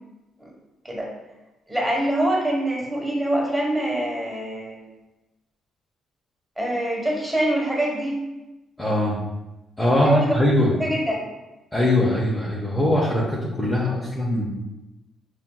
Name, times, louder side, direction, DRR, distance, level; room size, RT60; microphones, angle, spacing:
voice 1, 1.7-4.8 6.6-8.2 10.0-10.4 10.8-11.2, right 1 dB, 5° right, -3 dB, 1.2 m, -24 dB
voice 2, 8.8-9.2 9.8-10.7 11.7-14.5, left 1 dB, 15° left, -5 dB, 0.8 m, -21 dB
5.9 x 2.5 x 2.3 m, 1.0 s
cardioid pair, 90°, 0 cm